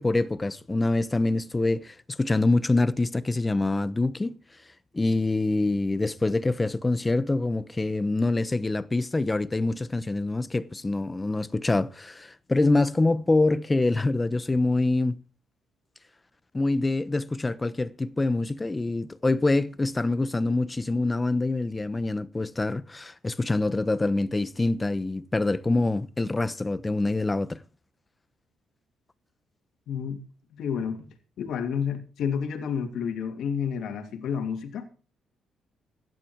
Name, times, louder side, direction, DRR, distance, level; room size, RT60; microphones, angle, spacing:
voice 1, 0.0-4.4 4.9-15.2 16.5-27.6, left 2 dB, 20° left, 1.0 m, -25 dB
voice 2, 29.9-30.3 30.5-34.9, left 7 dB, 75° left, 2.9 m, -30 dB
16.5 x 12.5 x 4.7 m
cardioid pair, 90°, 0 cm